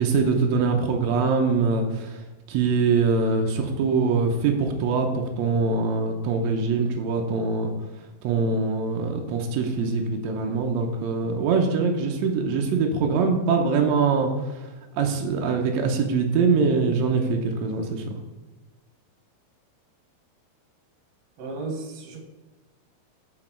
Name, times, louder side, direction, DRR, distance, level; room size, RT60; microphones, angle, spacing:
voice 1, 0.0-2.2 2.5-7.7 8.2-14.3 14.9-18.0, right 4 dB, 85° right, 2 dB, 1.5 m, -23 dB
voice 2, 21.4-22.2, right 3 dB, 60° right, 3 dB, 1.8 m, -34 dB
6.9 x 6.2 x 4.4 m, 1.2 s
omnidirectional pair, 4.2 m